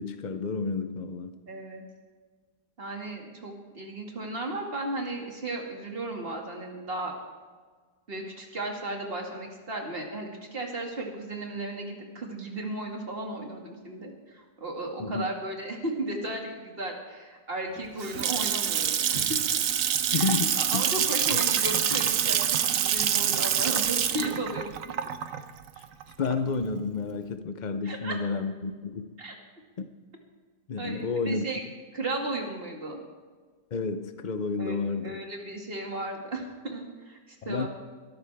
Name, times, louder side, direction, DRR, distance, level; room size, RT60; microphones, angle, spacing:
voice 1, 0.0-1.4 15.0-15.3 20.1-20.9 21.3-21.4 26.2-29.2 29.8-29.9 30.7-31.4 33.7-35.2 37.4-37.7, left 4 dB, 70° left, 9 dB, 0.4 m, -31 dB
voice 2, 1.5-1.8 2.8-7.2 8.1-19.4 20.1-24.6 27.8-28.2 29.2-29.4 30.8-31.6 31.9-33.0 34.6-34.8 35.0-37.7, right 2 dB, 35° right, 1 dB, 2.4 m, -35 dB
Water tap faucet / Sink (filling or washing) / Splash splatter, 17.8-26.6, right 9 dB, 60° right, 1.0 m, -26 dB
22.0 x 13.0 x 3.5 m, 1.5 s
omnidirectional pair, 1.8 m